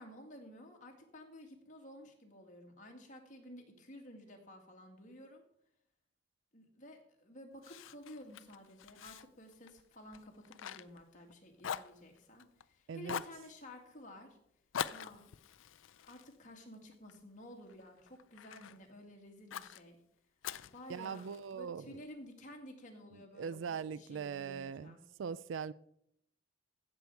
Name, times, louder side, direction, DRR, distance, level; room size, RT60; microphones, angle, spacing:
voice 1, 0.0-5.4 6.5-14.4 14.9-15.3 16.0-20.0 20.7-25.0, left 1 dB, 40° left, 2.1 m, -53 dB
Fire, 7.6-11.3 11.6-12.6 13.0-13.4 14.7-17.2 17.7-18.8 19.5-19.8 20.4-21.5, left 8 dB, 85° left, 0.4 m, -44 dB
voice 2, 12.9-13.2 20.9-22.1 23.1-25.7, right 6 dB, 75° right, 0.4 m, -41 dB
16.0 x 6.9 x 4.7 m
head